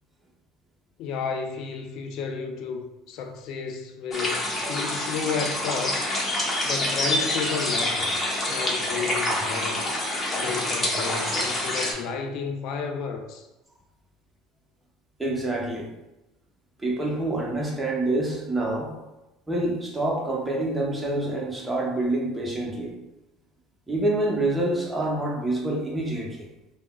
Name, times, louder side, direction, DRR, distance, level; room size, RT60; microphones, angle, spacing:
voice 1, 1.0-6.0 6.6-8.1 8.5-9.9 10.4-13.5, left 5 dB, 65° left, 5 dB, 0.3 m, -32 dB
sound 1, 4.1-11.9, left 1 dB, 25° left, 0.9 m, -27 dB
voice 2, 15.2-15.9 16.8-18.9 19.5-22.9 23.9-26.5, right 2 dB, 15° right, -2 dB, 0.8 m, -27 dB
3.5 x 2.0 x 2.2 m, 0.98 s
hypercardioid pair, 80°, 0 cm